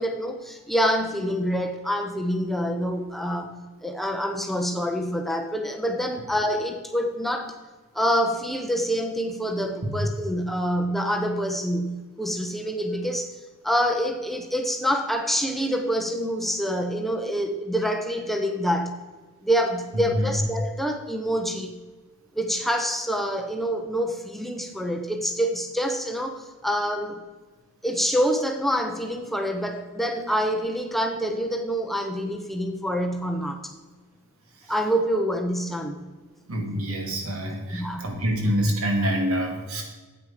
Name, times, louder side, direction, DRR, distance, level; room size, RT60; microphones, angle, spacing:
voice 1, 0.0-7.5 7.9-13.3 13.6-19.0 19.4-21.8 22.3-27.2 27.8-33.6 34.7-36.0 37.7-38.1, equal, ahead, 4 dB, 0.7 m, -26 dB
voice 2, 19.9-20.3 36.5-39.8, equal, 70° right, 2 dB, 2.1 m, -26 dB
8.8 x 8.1 x 4.9 m, 1.3 s
head